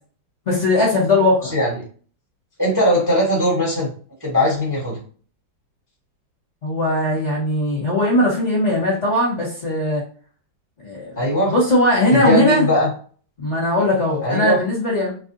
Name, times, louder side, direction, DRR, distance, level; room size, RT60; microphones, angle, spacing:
voice 1, 0.5-1.5 6.6-10.0 10.8-11.1 11.5-12.7 13.4-15.1, left 1 dB, 40° left, -5 dB, 1.5 m, -19 dB
voice 2, 1.4-1.8 2.6-3.9 4.2-5.0 11.1-11.5 12.1-12.9 14.2-14.6, left 1 dB, 10° right, -6 dB, 1.3 m, -19 dB
4.0 x 2.3 x 2.7 m, 0.41 s
omnidirectional pair, 2.1 m